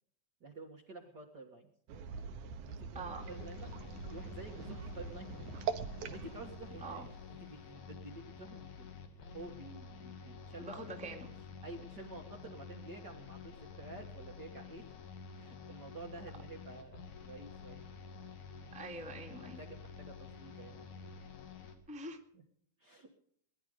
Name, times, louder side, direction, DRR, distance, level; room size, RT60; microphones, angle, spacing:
voice 1, 0.4-1.7 2.2-3.7 4.1-5.5 5.8-7.0 7.4-11.2 11.6-14.9 15.3-17.8 19.4-21.3 22.3-22.4 22.8-23.1, right 3 dB, 40° right, 1 dB, 1.8 m, -50 dB
sound 1, 1.9-7.7, right 6 dB, 85° right, 2.7 m, -43 dB
voice 2, 2.9-3.3 6.8-7.1 10.6-11.3 18.7-19.6 21.9-22.2, right 2 dB, 5° right, 2 dB, 1.7 m, -44 dB
sound 2, 3.2-21.8, left 5 dB, 85° left, 3.6 m, -50 dB
21.5 x 11.5 x 5.0 m, 0.66 s
omnidirectional pair, 3.4 m